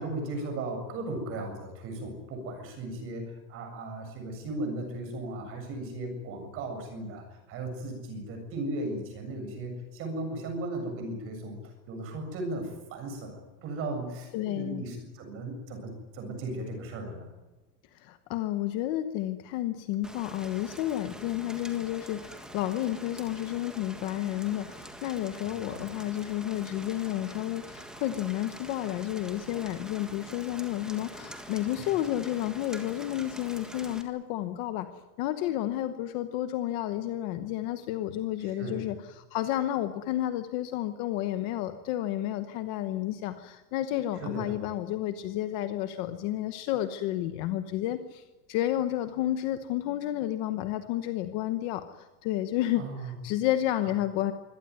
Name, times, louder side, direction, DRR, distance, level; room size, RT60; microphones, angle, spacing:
voice 1, 0.0-11.6 11.9-17.3 25.4-25.9 31.6-31.8 38.4-38.8 44.2-44.6 52.8-53.1 53.8-53.9, right 2 dB, 25° right, 5 dB, 7.4 m, -36 dB
voice 2, 14.3-14.8 17.9-34.9 35.2-48.2 48.5-54.3, left 13 dB, 30° left, 9 dB, 1.0 m, -31 dB
Rain, 20.0-34.0, right 1 dB, ahead, 1.6 m, -45 dB
25.0 x 17.5 x 9.7 m, 1.1 s
supercardioid pair, 180°, 49 cm